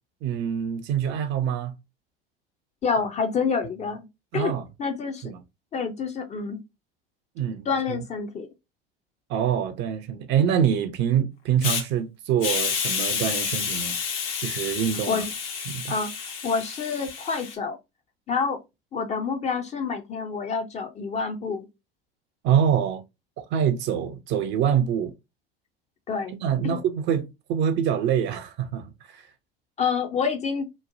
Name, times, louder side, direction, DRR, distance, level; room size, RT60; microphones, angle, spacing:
voice 1, 0.2-1.7 4.3-4.6 5.2-5.4 7.4-7.6 9.3-14.0 14.4-15.2 15.7-15.9 22.4-23.0 23.4-25.1 26.4-29.2, right 8 dB, 40° right, 0.5 m, -25 dB
voice 2, 2.8-4.1 4.3-5.2 5.7-6.6 7.7-8.5 15.1-15.3 15.9-17.8 18.3-18.6 18.9-21.7 26.1-26.3 26.6-26.8 29.8-30.7, left 5 dB, 25° left, 0.4 m, -28 dB
Hiss, 11.6-11.8 12.4-17.5, left 6 dB, 65° left, 0.8 m, -29 dB
3.0 x 2.0 x 2.5 m
figure-of-eight pair, 75°, 30 cm